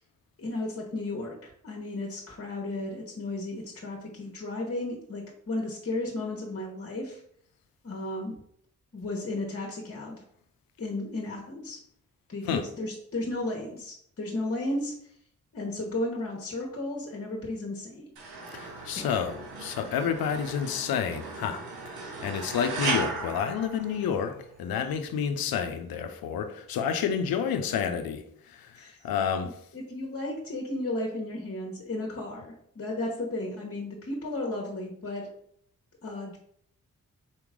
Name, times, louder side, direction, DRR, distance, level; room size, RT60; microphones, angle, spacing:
voice 1, 0.4-7.2 7.8-8.4 8.9-10.2 10.8-11.8 12.3-14.9 15.5-18.1 18.9-19.2 22.0-22.1 28.7-29.0 29.7-35.3 36.0-36.4, left 2 dB, 40° left, 1.2 m, -34 dB
sound 1, 18.2-24.4, right 3 dB, 90° right, 0.9 m, -36 dB
voice 2, 18.5-21.6 21.9-29.6, left 7 dB, 80° left, 0.6 m, -30 dB
4.4 x 3.0 x 3.7 m
supercardioid pair, 45°, 35 cm